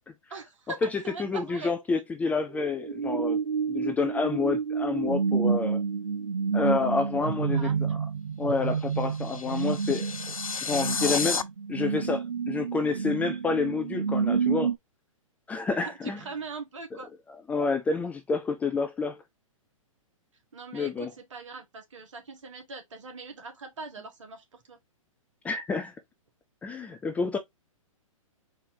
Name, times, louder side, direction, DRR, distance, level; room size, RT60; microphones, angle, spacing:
voice 1, 0.3-1.7 7.2-8.0 15.8-17.1 20.5-24.8, right 4 dB, 60° right, 1.6 m, -41 dB
voice 2, 0.8-3.4 3.7-5.8 6.5-7.9 8.4-10.1 10.6-11.4 11.7-14.7 15.5-16.2 17.3-19.2 20.7-21.1 25.4-25.9 26.6-27.4, left 4 dB, 10° left, 0.4 m, -29 dB
sound 1, 2.5-14.8, right 6 dB, 80° right, 0.5 m, -29 dB
sound 2, 8.7-11.4, left 5 dB, 85° left, 0.4 m, -32 dB
4.3 x 2.7 x 3.8 m
figure-of-eight pair, 115°, 18 cm